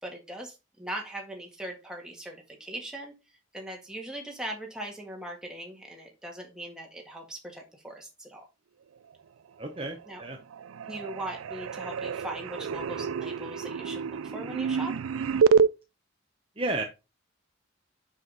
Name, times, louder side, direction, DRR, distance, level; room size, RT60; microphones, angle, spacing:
voice 1, 0.0-3.1 3.5-8.4 10.1-10.2 10.9-14.9, right 1 dB, 5° right, 0 dB, 1.7 m, -40 dB
voice 2, 9.6-10.4 16.6-16.8, right 2 dB, 25° right, 3 dB, 0.8 m, -32 dB
sound 1, 9.7-10.3 10.5-15.7, right 6 dB, 90° right, 0.4 m, -28 dB
5.9 x 5.6 x 3.9 m, 0.26 s
head